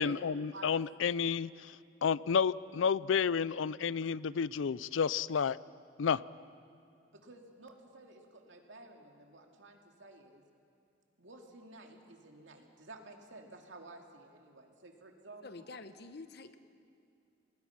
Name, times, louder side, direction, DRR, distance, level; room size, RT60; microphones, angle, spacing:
voice 1, 0.0-1.7 2.0-5.6 6.0-6.2, left 6 dB, 90° left, 19 dB, 0.4 m, -31 dB
voice 2, 7.1-10.4 11.2-15.6, right 2 dB, 75° right, 2 dB, 2.5 m, -52 dB
voice 3, 15.4-16.6, left 3 dB, 60° left, 10 dB, 0.9 m, -48 dB
30.0 x 19.5 x 5.9 m, 2.5 s
head